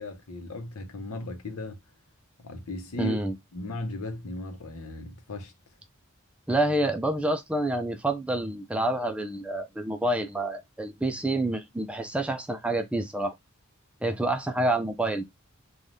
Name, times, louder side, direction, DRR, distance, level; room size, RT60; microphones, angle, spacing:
voice 1, 0.0-1.8 2.4-3.2 3.5-5.5, left 1 dB, 85° left, 0.7 m, -36 dB
voice 2, 3.0-3.4 6.5-13.3 14.0-15.2, right 1 dB, 5° right, 0.3 m, -28 dB
3.3 x 2.2 x 2.5 m
head